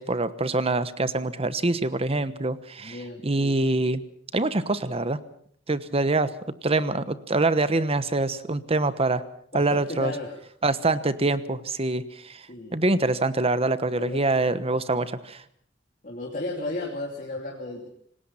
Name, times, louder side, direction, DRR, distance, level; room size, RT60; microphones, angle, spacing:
voice 1, 0.0-3.0 3.2-4.0 4.3-5.2 5.7-6.3 6.6-9.2 9.5-10.1 10.6-12.5 12.7-15.4, right 2 dB, 30° right, 13 dB, 1.1 m, -25 dB
voice 2, 2.8-3.6 9.5-10.4 12.5-12.7 13.9-14.5 16.0-17.9, left 2 dB, 45° left, -1 dB, 3.1 m, -34 dB
27.0 x 19.5 x 5.7 m, 0.63 s
head